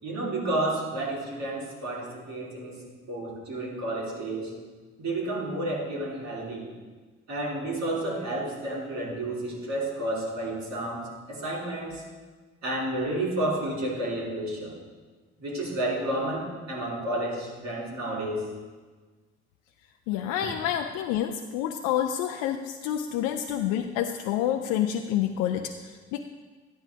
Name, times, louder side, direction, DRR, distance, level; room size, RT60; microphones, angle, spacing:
voice 1, 0.0-4.5 5.0-6.7 7.3-12.0 12.6-14.7 15.4-18.4, right 1 dB, 60° right, -4 dB, 3.4 m, -31 dB
voice 2, 20.1-25.7 26.1-26.2, left 10 dB, 75° left, 5 dB, 0.5 m, -28 dB
12.5 x 10.5 x 3.4 m, 1.4 s
hypercardioid pair, 45°, 32 cm